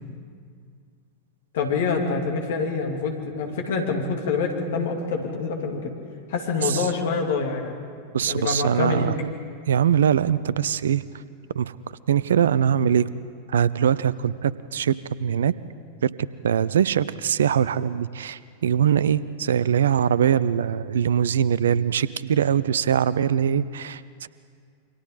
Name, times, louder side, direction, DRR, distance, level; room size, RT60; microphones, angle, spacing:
voice 1, 1.5-5.9 6.3-7.7 8.2-9.1, left 4 dB, 60° left, 1 dB, 2.9 m, -26 dB
voice 2, 8.1-9.3 9.7-11.0 11.5-11.7 12.1-13.1 13.5-15.5 16.0-16.1 16.4-24.3, right 8 dB, 65° right, 18 dB, 0.5 m, -22 dB
28.5 x 25.0 x 4.0 m, 2.2 s
figure-of-eight pair, 90°, 0 cm